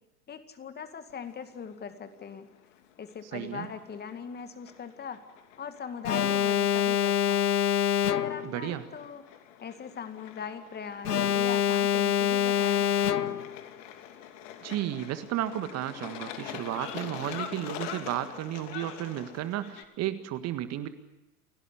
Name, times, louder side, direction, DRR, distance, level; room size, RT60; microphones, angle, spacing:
voice 1, 0.3-2.5 3.0-5.2 5.6-7.5 8.0-9.2 9.6-12.9 13.2-13.4, left 6 dB, 20° left, 9 dB, 2.1 m, -40 dB
sound 1, 1.1-19.8, left 9 dB, 50° left, 2.9 m, -45 dB
voice 2, 3.3-3.7 8.4-8.8 14.6-20.9, right 12 dB, 35° right, 11 dB, 1.7 m, -33 dB
Alarm, 6.0-8.6 11.0-13.6, left 10 dB, 85° left, 0.9 m, -25 dB
29.0 x 17.5 x 9.7 m, 0.95 s
figure-of-eight pair, 95°, 46 cm